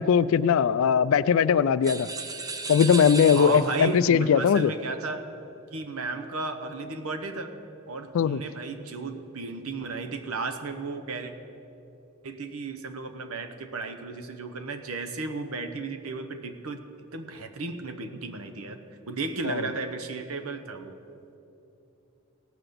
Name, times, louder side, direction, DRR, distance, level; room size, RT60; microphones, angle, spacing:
voice 1, 0.0-2.1 2.7-4.7 8.1-8.4 19.4-19.6, left 7 dB, 65° left, 17 dB, 0.3 m, -20 dB
sound 1, 1.8-4.0, right 4 dB, 15° right, 0.5 m, -35 dB
voice 2, 3.3-5.2 5.7-7.5 7.9-11.3 12.2-16.8 17.1-18.8 19.1-21.0, right 3 dB, 80° right, 7 dB, 0.9 m, -34 dB
17.0 x 5.9 x 6.8 m, 2.8 s
head